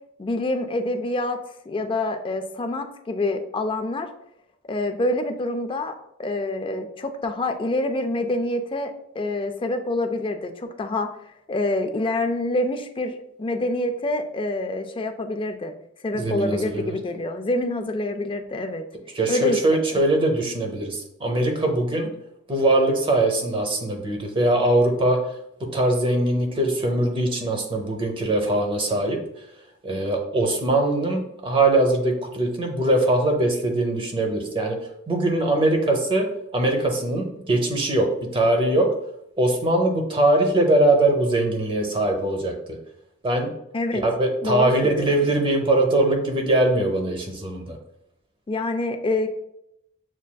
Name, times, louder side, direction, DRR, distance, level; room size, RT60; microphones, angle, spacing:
voice 1, 0.2-1.4 1.7-4.1 4.7-5.9 6.2-11.1 11.5-15.7 16.0-18.8 19.3-19.6 43.7-44.0 44.4-45.3 48.5-49.3, left 2 dB, 25° left, 6 dB, 0.4 m, -26 dB
voice 2, 16.1-17.0 19.1-22.1 22.5-25.2 25.7-29.2 29.8-34.8 35.1-36.3 36.5-38.1 38.3-38.9 39.4-42.5 43.2-43.5 43.9-47.8, right 1 dB, 25° right, 3 dB, 0.7 m, -21 dB
7.2 x 2.5 x 2.2 m, 0.80 s
head